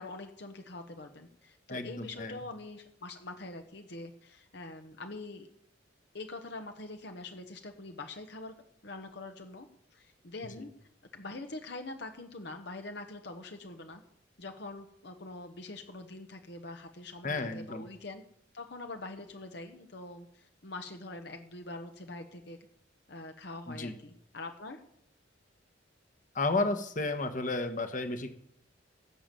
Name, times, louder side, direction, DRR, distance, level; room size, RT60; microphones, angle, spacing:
voice 1, 0.0-5.5 6.1-8.6 8.8-10.7 11.1-14.0 14.4-18.2 18.5-22.6 23.1-24.8, left 2 dB, 60° left, 5 dB, 1.2 m, -44 dB
voice 2, 1.7-2.4 17.2-17.8 23.7-23.9 26.3-28.3, left 2 dB, 40° left, 8 dB, 1.4 m, -32 dB
17.0 x 7.1 x 7.6 m, 0.68 s
head